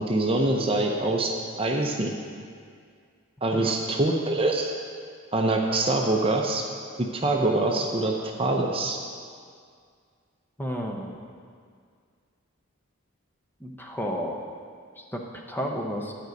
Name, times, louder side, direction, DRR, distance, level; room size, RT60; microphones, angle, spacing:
voice 1, 0.0-1.3 1.6-2.1 3.4-4.7 5.3-6.6 7.0-8.1 8.4-9.0, right 2 dB, 25° right, 1 dB, 0.6 m, -24 dB
voice 2, 10.6-11.2 13.6-14.4 15.0-15.2 15.5-16.1, equal, 10° left, 0 dB, 0.8 m, -32 dB
11.0 x 5.2 x 7.9 m, 2.2 s
head